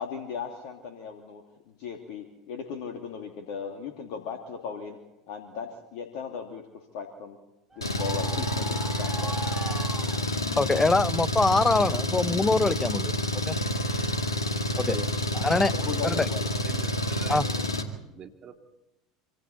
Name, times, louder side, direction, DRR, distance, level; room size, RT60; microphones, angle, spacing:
voice 1, 0.0-5.0 5.3-7.4 7.8-9.4 14.9-15.1 15.7-16.5, left 6 dB, 55° left, 3 dB, 2.7 m, -37 dB
sound 1, 7.7-11.3 11.6-13.4 13.8-14.7 15.4-15.7, right 3 dB, 15° right, 2.3 m, -42 dB
Engine, 7.8-17.8, equal, 85° left, 2.1 m, -28 dB
voice 2, 10.6-13.1 13.5-13.6 14.8-14.9 15.3-15.7 16.0-16.3 17.3-17.5, left 3 dB, 15° left, 17 dB, 0.8 m, -24 dB
voice 3, 15.8-16.3 16.6-17.7 18.1-18.5, right 7 dB, 35° right, 3 dB, 3.1 m, -45 dB
26.5 x 26.0 x 4.3 m, 0.94 s
figure-of-eight pair, 75°, 3 cm